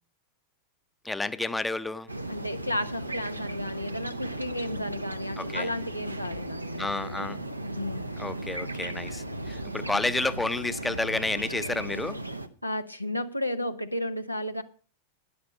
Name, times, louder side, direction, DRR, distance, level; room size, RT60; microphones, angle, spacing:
voice 1, 1.0-2.1 5.4-5.7 6.8-7.4 8.2-12.2, left 2 dB, 10° left, 0.7 m, -30 dB
sound 1, 2.1-12.5, right 1 dB, 85° right, 0.9 m, -36 dB
voice 2, 2.3-6.8 7.6-8.1 12.6-14.6, left 1 dB, 90° left, 0.9 m, -33 dB
12.0 x 10.5 x 5.1 m
figure-of-eight pair, 90°, 0 cm